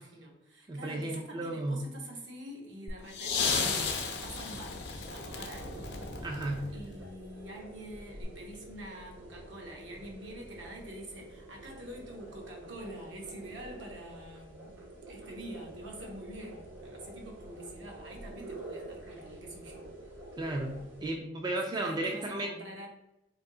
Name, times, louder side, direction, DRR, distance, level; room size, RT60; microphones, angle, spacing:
voice 1, 0.0-4.8 5.1-5.9 6.7-14.8 15.1-19.9 21.6-22.9, right 1 dB, 70° right, 0 dB, 0.9 m, -46 dB
voice 2, 0.7-1.8 6.2-6.7 20.4-22.5, right 2 dB, 20° right, 1 dB, 0.3 m, -34 dB
sound 1, 2.9-7.1 8.2-8.3, left 5 dB, 60° left, 0.6 m, -34 dB
sound 2, 5.0-21.1, right 1 dB, 90° right, 1.3 m, -48 dB
3.5 x 2.7 x 3.7 m, 0.90 s
head